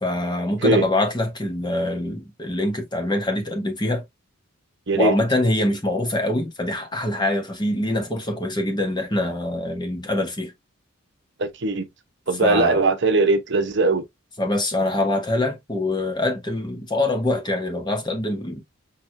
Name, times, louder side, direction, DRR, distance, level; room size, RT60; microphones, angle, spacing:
voice 1, 0.0-4.0 4.9-10.5 12.4-12.8 14.4-18.6, left 1 dB, 20° left, 1.1 m, -24 dB
voice 2, 11.4-11.8 12.3-14.0, right 3 dB, 55° right, 0.9 m, -20 dB
6.2 x 3.0 x 2.6 m
head